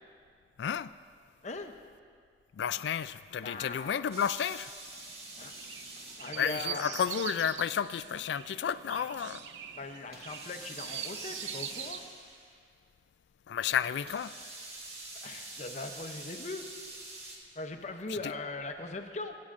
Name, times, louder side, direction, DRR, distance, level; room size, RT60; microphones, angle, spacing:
voice 1, 0.6-0.9 2.5-4.7 6.4-9.4 13.5-14.3, left 8 dB, 75° left, 0.3 m, -32 dB
voice 2, 3.4-4.0 5.4-5.5 6.2-7.0 9.7-12.0 15.2-16.6 17.6-19.4, left 2 dB, 40° left, 0.7 m, -40 dB
sound 1, 4.1-6.9 10.1-12.5 14.1-17.4, right 2 dB, 35° right, 1.5 m, -46 dB
Chirp tweet, 4.8-12.1, right 8 dB, 85° right, 0.5 m, -43 dB
24.0 x 8.5 x 2.5 m
head